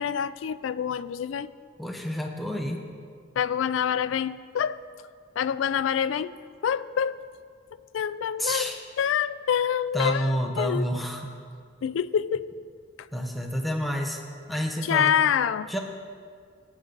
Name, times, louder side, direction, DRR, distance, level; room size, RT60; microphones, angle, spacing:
voice 1, 0.0-1.5 3.4-4.8 5.4-6.4 6.6-7.3 7.9-10.9 11.8-12.5 14.8-15.7, left 8 dB, 85° left, 15 dB, 0.3 m, -26 dB
voice 2, 1.8-2.8 8.4-8.8 9.9-11.3 13.1-14.2 14.5-15.1 15.7-15.8, equal, ahead, 1 dB, 0.8 m, -29 dB
15.5 x 9.2 x 3.9 m, 2.1 s
head